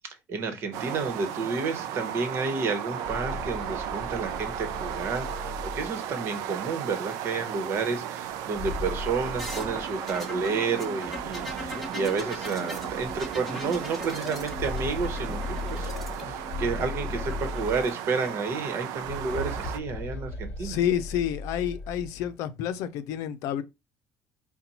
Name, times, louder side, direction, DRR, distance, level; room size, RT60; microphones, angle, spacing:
voice 1, 0.0-5.5 5.7-15.9 16.2-20.8, right 4 dB, 50° right, 1.1 m, -31 dB
sound 1, 0.7-19.8, right 10 dB, 85° right, 0.4 m, -35 dB
sound 2, 2.8-6.5 8.3-10.5 10.8-10.9 11.8-11.9 12.3-12.5 14.1-18.3 18.9-22.3, left 2 dB, 30° left, 1.1 m, -37 dB
sound 3, 9.4-17.9 19.0-19.7, left 1 dB, ahead, 1.2 m, -40 dB
voice 2, 20.6-23.6, left 10 dB, 80° left, 0.5 m, -29 dB
4.2 x 2.3 x 4.1 m
cardioid pair, 130°, 5 cm